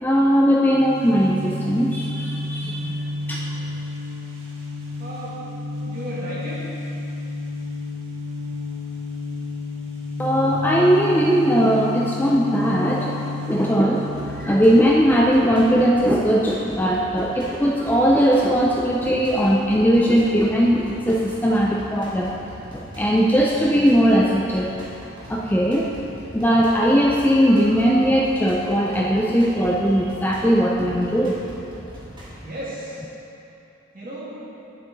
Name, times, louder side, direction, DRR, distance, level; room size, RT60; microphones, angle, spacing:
voice 1, 0.0-2.9 3.3-3.5 10.2-13.1 13.5-22.3 22.7-24.8 25.3-25.9 26.3-31.4, equal, 10° left, -3 dB, 0.4 m, -19 dB
sound 1, 0.7-15.3, left 3 dB, 75° right, 1.6 m, -31 dB
voice 2, 5.0-5.4 5.8-6.6 32.4-33.1 33.9-34.4, right 1 dB, 45° right, -8 dB, 2.1 m, -34 dB
sound 2, 13.9-32.3, equal, 25° right, 1.6 m, -41 dB
8.9 x 7.5 x 3.9 m, 2.9 s
head